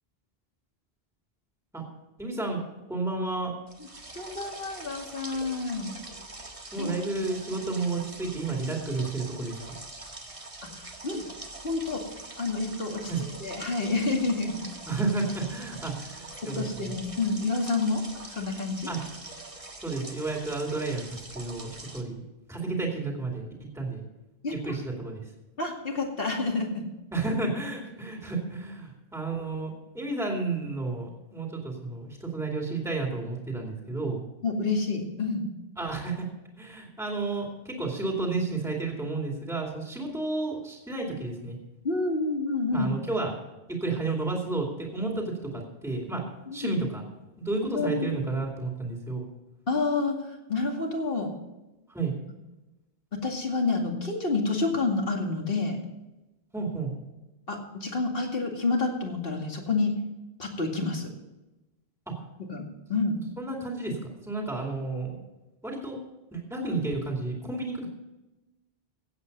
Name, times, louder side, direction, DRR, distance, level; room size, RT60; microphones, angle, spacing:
voice 1, 2.2-2.6 2.9-3.5 6.7-9.8 13.1-13.2 14.9-16.9 18.9-19.0 19.8-22.2 22.5-23.5 23.7-24.0 24.5-25.3 27.1-34.2 35.8-36.3 36.6-41.6 42.7-43.3 43.7-46.2 46.5-47.0 47.4-49.2 51.9-52.1 56.5-56.9 62.1-62.2 63.4-64.0 64.2-65.2 65.6-66.0 66.3-67.9, right 3 dB, 5° right, -1 dB, 2.5 m, -31 dB
sound 1, 3.7-22.0, right 2 dB, 35° right, 1.6 m, -44 dB
voice 2, 4.1-5.9 6.8-6.9 11.0-11.2 11.6-12.0 12.4-13.1 13.4-14.6 16.4-18.9 24.4-24.7 25.6-26.9 34.4-35.4 41.8-42.9 46.5-46.7 47.7-48.1 49.7-51.3 53.1-55.8 57.5-60.0 60.4-61.1 62.5-62.6 62.9-63.2, left 3 dB, 65° left, 1 dB, 2.5 m, -28 dB
16.5 x 8.4 x 5.4 m, 1.0 s
omnidirectional pair, 1.0 m